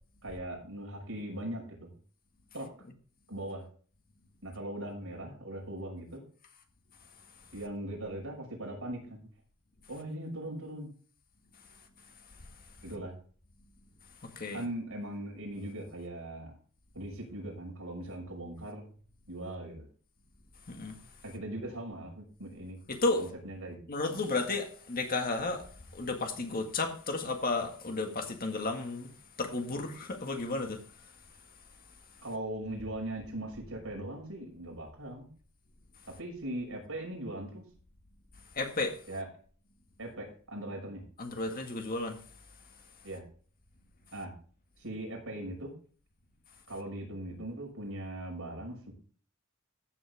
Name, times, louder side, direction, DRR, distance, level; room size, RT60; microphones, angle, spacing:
voice 1, 0.2-1.9 2.5-2.7 3.3-3.6 4.4-6.2 7.5-9.3 9.9-10.9 12.8-13.1 14.5-16.5 16.9-18.9 19.3-19.9 21.2-22.8 23.2-23.8 32.2-35.3 36.1-37.6 39.1-39.3 40.0-41.0 43.0-43.2 44.1-44.3 44.8-45.7 46.7-48.9, right 1 dB, 65° right, 6.0 m, -40 dB
voice 2, 14.2-14.6 20.7-21.0 22.9-23.3 23.9-29.1 29.4-30.8 38.5-39.0 41.2-42.2, left 3 dB, 45° left, 1.8 m, -33 dB
15.0 x 7.9 x 3.5 m
head